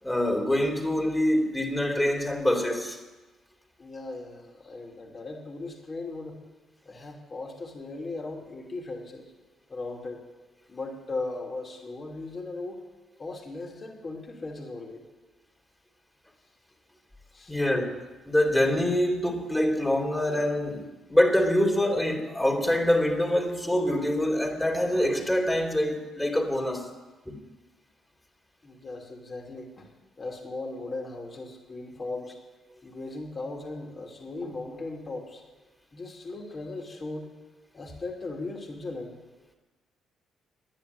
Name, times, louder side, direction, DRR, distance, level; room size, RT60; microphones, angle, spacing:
voice 1, 0.0-3.0 17.5-26.9 27.2-27.4, left 1 dB, 10° left, 3.0 m, -25 dB
voice 2, 3.8-6.4 6.8-9.3 9.7-10.2 10.7-12.8 13.2-15.0 17.3-17.6 28.6-29.9 30.2-32.4 32.8-35.4 35.9-37.3 37.7-39.2, left 2 dB, 40° left, 2.9 m, -38 dB
11.0 x 10.0 x 9.5 m
supercardioid pair, 70°, 0 cm